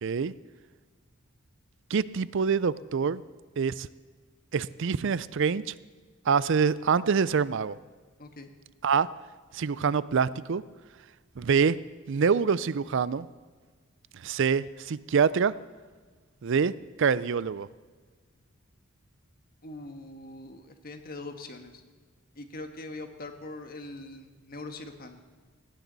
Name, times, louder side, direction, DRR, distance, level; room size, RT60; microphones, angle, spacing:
voice 1, 0.0-0.3 1.9-3.2 3.6-3.9 4.5-5.7 6.3-7.8 8.8-9.1 9.5-10.6 11.4-11.8 12.1-13.3 14.2-15.5 16.4-17.7, right 6 dB, 60° right, 18 dB, 0.5 m, -25 dB
voice 2, 8.2-8.5 19.6-21.8 22.3-25.2, left 2 dB, 45° left, 6 dB, 1.4 m, -42 dB
18.0 x 17.0 x 4.1 m, 1.5 s
head